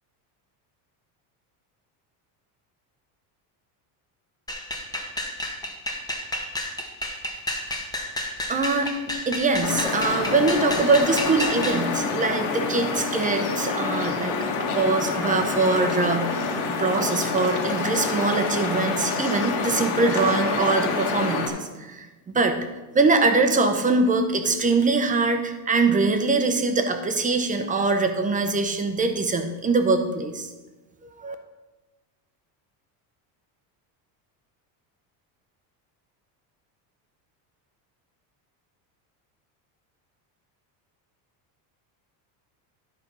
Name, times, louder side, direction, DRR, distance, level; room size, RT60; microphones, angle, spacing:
sound 1, 4.5-11.8, left 1 dB, 10° left, 0.9 m, -31 dB
voice 1, 8.5-8.9 9.3-16.4 16.8-22.6 22.9-30.5 31.2-31.3, right 3 dB, 15° right, 6 dB, 0.7 m, -23 dB
sound 2, 9.6-21.5, left 4 dB, 85° left, 1.9 m, -27 dB
11.5 x 4.3 x 5.4 m, 1.1 s
cardioid pair, 150°, 48 cm